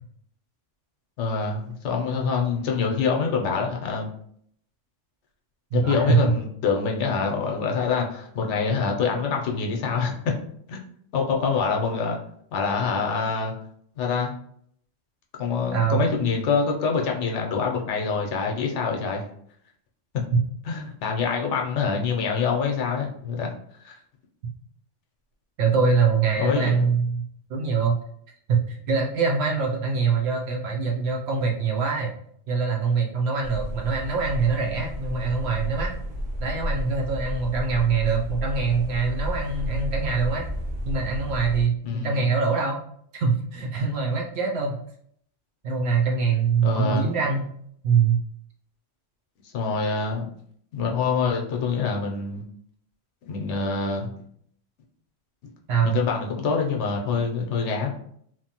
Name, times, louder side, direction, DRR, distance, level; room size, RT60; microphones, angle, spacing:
voice 1, 1.2-4.1 5.7-10.3 10.7-10.8 11.1-12.2 12.5-13.5 14.0-14.3 15.4-19.2 20.1-20.2 20.7-23.5 23.8-24.0 26.4-26.8 41.8-42.3 46.6-47.1 49.5-50.3 50.7-52.4 53.2-54.1 55.8-57.9, left 5 dB, 75° left, 1 dB, 0.9 m, -25 dB
voice 2, 5.7-6.2 15.7-16.0 25.6-27.2 27.5-28.0 28.5-32.1 32.5-36.0 36.4-40.5 40.8-42.8 43.1-44.8 45.6-47.5 47.8-48.2 55.7-56.0, right 5 dB, 65° right, 0 dB, 0.8 m, -24 dB
sound 1, 33.4-41.6, equal, 85° right, 1.0 m, -32 dB
2.9 x 2.1 x 2.8 m, 0.66 s
omnidirectional pair, 1.3 m